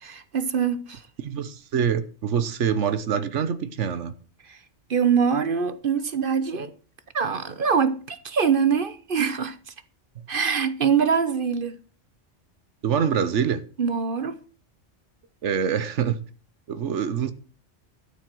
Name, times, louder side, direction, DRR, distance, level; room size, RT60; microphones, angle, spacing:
voice 1, 0.0-1.0 4.5-4.6 4.9-6.7 7.1-9.6 10.3-11.8 13.8-14.4, right 6 dB, 50° right, 1.0 m, -24 dB
voice 2, 1.2-4.1 12.8-13.6 15.4-16.2 16.7-17.3, right 7 dB, 80° right, 1.3 m, -25 dB
13.0 x 7.5 x 6.0 m
omnidirectional pair, 1.2 m